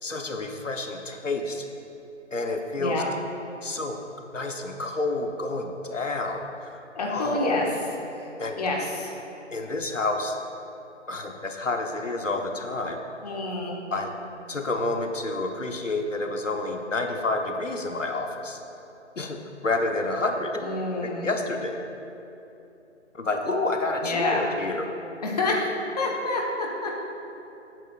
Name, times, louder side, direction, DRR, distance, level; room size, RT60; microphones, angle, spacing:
voice 1, 0.0-1.7 2.3-3.0 3.6-4.0 4.3-6.8 7.1-7.6 8.4-8.6 9.5-10.4 11.1-13.0 13.9-14.1 14.5-18.6 19.2-19.4 19.6-20.6 21.0-21.8 23.1-24.9, left 2 dB, 80° left, 3 dB, 1.1 m, -29 dB
voice 2, 7.0-7.6 8.6-9.1 13.2-13.8 20.6-21.3 24.0-24.5 25.2-25.6 26.0-26.9, left 2 dB, 30° left, -1 dB, 1.2 m, -28 dB
15.5 x 8.9 x 2.4 m, 3.0 s
figure-of-eight pair, 150°, 37 cm